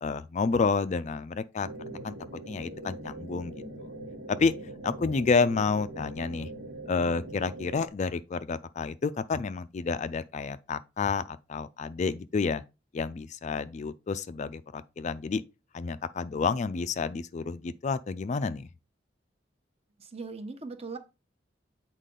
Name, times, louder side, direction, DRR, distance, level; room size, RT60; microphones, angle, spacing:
voice 1, 0.0-1.7 2.0-2.2 2.5-3.9 4.4-4.5 4.8-6.5 6.9-12.6 12.9-15.4 15.7-18.7, left 4 dB, 40° left, 0.4 m, -29 dB
sound 1, 1.6-7.9, right 1 dB, 80° right, 1.6 m, -42 dB
voice 2, 20.0-21.0, right 4 dB, 35° right, 0.9 m, -39 dB
8.2 x 4.5 x 3.8 m
head